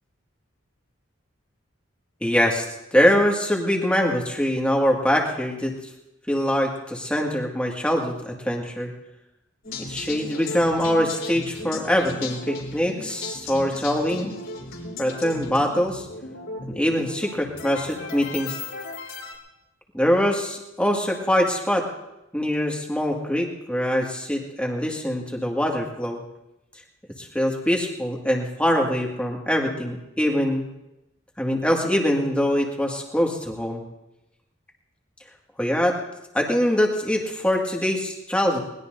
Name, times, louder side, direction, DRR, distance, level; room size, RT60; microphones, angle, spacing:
voice 1, 2.2-2.7 2.9-5.7 6.3-8.9 9.8-14.3 15.0-16.1 16.7-18.6 19.9-21.9 22.3-26.2 27.2-30.7 31.4-33.8 35.6-36.0 36.3-38.6, equal, 5° left, 0 dB, 1.9 m, -23 dB
sound 1, 9.6-19.3, left 3 dB, 75° left, 3.5 m, -36 dB
21.5 x 20.0 x 2.6 m, 0.92 s
head